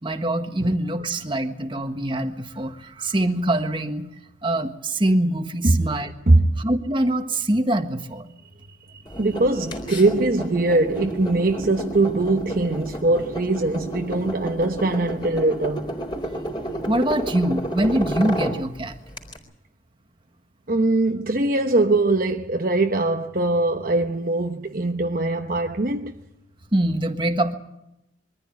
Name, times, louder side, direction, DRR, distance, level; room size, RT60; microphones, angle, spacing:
voice 1, 0.0-4.1 4.4-6.1 6.6-8.3 16.9-18.9 26.7-27.5, right 1 dB, 25° right, 1.5 m, -24 dB
voice 2, 8.9-15.9 20.7-26.1, right 2 dB, 50° right, 1.0 m, -21 dB
sound 1, 9.1-19.4, right 1 dB, 25° left, 4.0 m, -31 dB
23.0 x 14.5 x 9.7 m
head